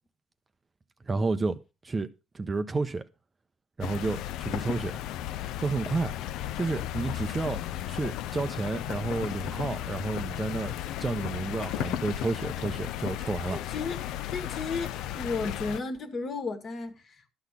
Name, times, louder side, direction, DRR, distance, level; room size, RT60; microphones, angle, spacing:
voice 1, 1.1-1.6 1.8-2.1 2.3-3.0 3.8-5.0 5.6-6.1 6.6-7.6 7.9-13.6, right 3 dB, 20° right, 0.6 m, -31 dB
sound 1, 3.8-15.8, left 12 dB, 85° left, 0.5 m, -35 dB
voice 2, 13.5-14.0 14.3-17.3, left 4 dB, 40° left, 1.6 m, -34 dB
12.0 x 4.2 x 8.2 m
cardioid pair, 150°, 0 cm